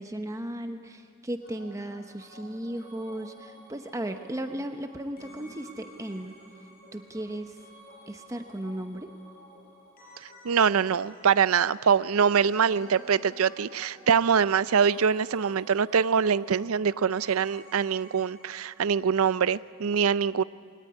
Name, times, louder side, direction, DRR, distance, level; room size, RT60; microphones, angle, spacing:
voice 1, 0.0-6.4 6.9-7.6 8.1-9.1, right 1 dB, 15° right, 6 dB, 0.9 m, -36 dB
sound 1, 1.4-19.5 19.7-19.8, equal, 45° left, 6.9 m, -52 dB
voice 2, 10.4-20.4, right 6 dB, 80° right, 17 dB, 0.5 m, -24 dB
22.0 x 18.0 x 9.9 m, 2.2 s
head